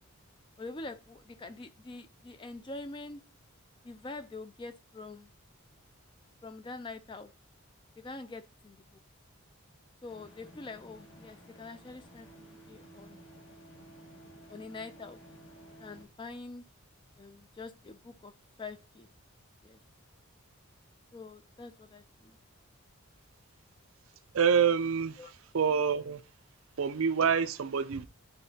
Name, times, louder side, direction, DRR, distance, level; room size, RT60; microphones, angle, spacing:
voice 1, 0.6-3.2 3.8-5.3 6.4-7.3 8.0-8.8 10.0-12.3 12.7-13.2 14.5-15.2 15.8-16.6 17.2-18.3 18.6-19.1 19.6-19.8 21.1-22.4 25.2-25.3, left 3 dB, 20° left, 0.3 m, -45 dB
sound 1, 10.1-16.0, right 1 dB, 60° left, 1.6 m, -54 dB
voice 2, 24.3-25.2 25.5-26.2 26.8-28.1, right 6 dB, 65° right, 0.4 m, -26 dB
11.0 x 3.8 x 2.7 m
head